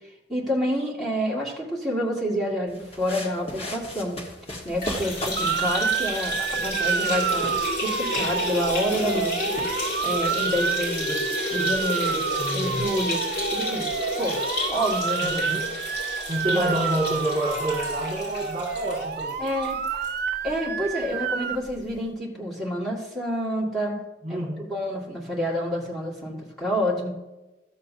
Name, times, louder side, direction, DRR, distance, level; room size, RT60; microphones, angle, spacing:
voice 1, 0.3-4.2 4.6-9.4 10.0-11.2 11.5-12.2 12.5-13.2 13.5-13.9 14.2-15.5 16.5-16.8 19.4-19.8 20.4-24.0 24.3-24.4 24.7-27.2, equal, ahead, -6 dB, 2.0 m, -28 dB
sound 1, 2.7-10.2, left 1 dB, 35° left, 1.5 m, -39 dB
sound 2, 4.7-20.1 20.5-20.6 20.9-21.0 22.0-22.1, left 2 dB, 60° left, 3.6 m, -31 dB
Motor vehicle (road) / Siren, 5.4-21.6, right 7 dB, 60° right, 0.4 m, -29 dB
voice 2, 12.4-12.8 15.2-15.7 16.3-19.4 24.2-24.7, right 1 dB, 35° right, -1 dB, 1.9 m, -28 dB
13.5 x 7.3 x 2.8 m, 1.0 s
head